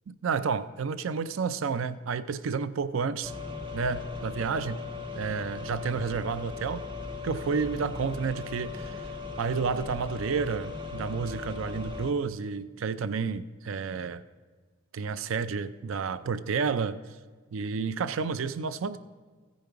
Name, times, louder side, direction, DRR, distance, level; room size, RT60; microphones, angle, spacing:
voice 1, 0.1-3.3 3.7-4.8 5.1-6.8 7.2-9.1 9.4-14.2 14.9-17.0 17.5-19.0, right 5 dB, 65° right, 14 dB, 0.4 m, -30 dB
sound 1, 3.2-12.1, left 4 dB, 25° right, 0.9 m, -38 dB
15.5 x 5.3 x 4.7 m, 1.5 s
head